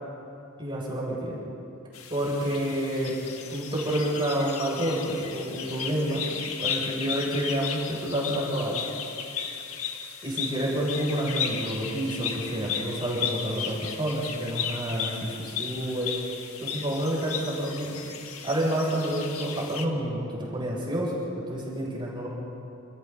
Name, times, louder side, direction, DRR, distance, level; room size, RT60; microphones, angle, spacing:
voice 1, 0.6-1.4 2.1-3.2 3.5-6.2 6.6-8.8 10.2-16.1 16.6-18.1 18.4-22.3, right 1 dB, 25° right, -6 dB, 7.2 m, -29 dB
sound 1, 1.9-19.8, left 7 dB, 75° left, 1.8 m, -35 dB
29.5 x 29.0 x 4.1 m, 2.8 s
head